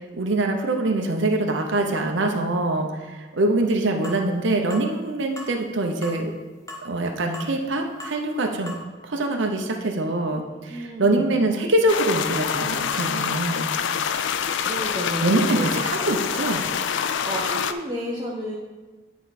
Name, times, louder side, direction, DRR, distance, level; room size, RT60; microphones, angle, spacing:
voice 1, 0.1-6.3 6.8-8.8 9.0-13.7 15.2-16.6, right 2 dB, 60° right, 2 dB, 0.8 m, -24 dB
sound 1, 4.0-4.2 4.7-4.9 5.4-5.5 6.0-6.2 6.7-6.9 7.3-7.5 8.0-8.2 8.7-8.8, left 1 dB, 15° left, 0.8 m, -37 dB
voice 2, 10.7-11.3 14.4-15.7 16.0-16.3 17.2-18.6, right 1 dB, 20° right, -4 dB, 0.8 m, -32 dB
sound 2, 11.9-17.7, left 7 dB, 60° left, 0.3 m, -26 dB
9.7 x 4.6 x 4.2 m, 1.2 s
head